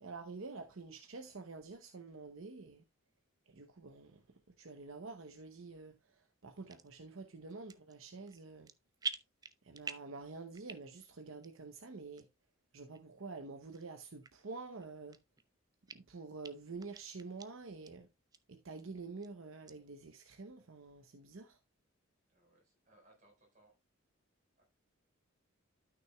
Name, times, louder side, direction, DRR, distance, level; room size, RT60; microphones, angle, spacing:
voice 1, 0.0-2.8 3.5-4.2 4.6-8.7 9.6-12.3 12.7-15.2 15.9-18.1 18.5-21.6, right 3 dB, 70° right, 0.8 m, -48 dB
sound 1, 6.7-6.9 7.5-8.0 8.3-8.7 9.0-10.2 10.5-11.1 11.4-11.5 12.2-12.3 12.9-13.0 13.7-13.8 14.2-14.3 14.8-15.5 15.9-16.0 16.4-16.5 16.8-17.5 17.9-18.0 18.3-18.4 18.8-19.3 19.7-19.8, right 5 dB, 20° right, 0.4 m, -44 dB
voice 2, 22.3-23.7 24.6-24.7, right 1 dB, 35° right, 4.4 m, -67 dB
12.5 x 6.0 x 2.3 m
head